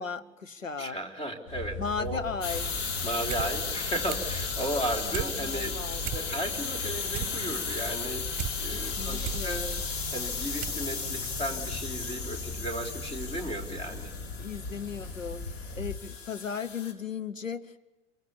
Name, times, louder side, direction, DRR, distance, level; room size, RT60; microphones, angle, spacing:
voice 1, 0.0-1.0 1.8-2.7 5.1-6.4 8.7-9.7 14.4-17.8, left 5 dB, 85° left, 10 dB, 1.2 m, -36 dB
voice 2, 0.8-2.2 3.0-5.8 6.1-8.3 8.6-14.1, right 1 dB, 15° left, 3 dB, 3.6 m, -35 dB
sound 1, 1.5-15.8, left 2 dB, 35° left, 6.4 m, -39 dB
sound 2, 2.4-16.9, left 5 dB, 55° left, 4.0 m, -35 dB
sound 3, 3.3-3.5 3.8-4.4 4.8-5.3 5.7-5.8 6.0-6.6 6.9-8.5 8.9-9.5 10.0-10.1 10.6-10.8 11.1-11.2, right 14 dB, 25° right, 1.7 m, -36 dB
27.5 x 24.0 x 7.1 m, 1.0 s
figure-of-eight pair, 95°, 38 cm